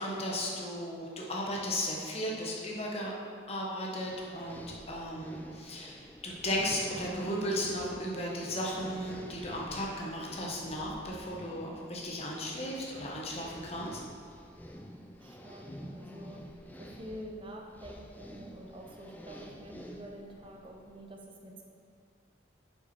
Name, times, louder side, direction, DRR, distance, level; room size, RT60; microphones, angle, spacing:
voice 1, 0.0-3.1 3.5-4.6 4.9-14.0, equal, 30° left, -2 dB, 1.0 m, -35 dB
sound 1, 4.1-21.0, equal, 10° left, 0.4 m, -48 dB
voice 2, 15.2-16.4 16.8-21.6, equal, 25° right, 1 dB, 0.7 m, -47 dB
7.0 x 5.7 x 4.4 m, 2.2 s
head